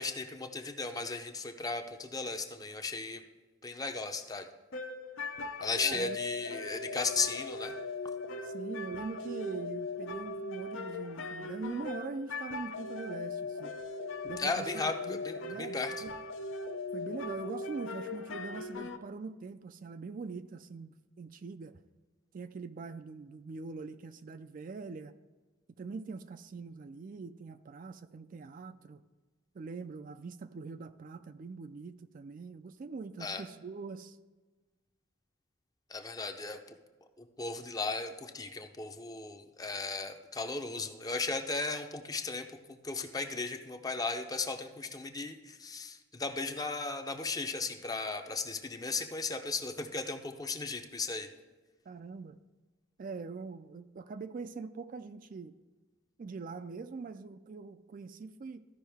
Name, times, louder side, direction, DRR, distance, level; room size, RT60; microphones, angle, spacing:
voice 1, 0.0-3.2 3.6-4.5 5.6-7.7 14.4-15.9 33.2-33.4 35.9-36.8 37.2-51.3, left 3 dB, 20° left, 6 dB, 0.6 m, -36 dB
sound 1, 4.7-19.0, left 3 dB, 75° left, 0.6 m, -39 dB
voice 2, 5.8-6.2 8.4-13.7 14.2-14.7 15.1-16.1 16.9-21.8 22.3-25.1 25.8-29.0 29.5-34.2 51.9-52.4 53.0-55.5 56.2-58.7, right 4 dB, 40° right, 10 dB, 0.3 m, -43 dB
14.0 x 5.4 x 3.5 m, 1.3 s
head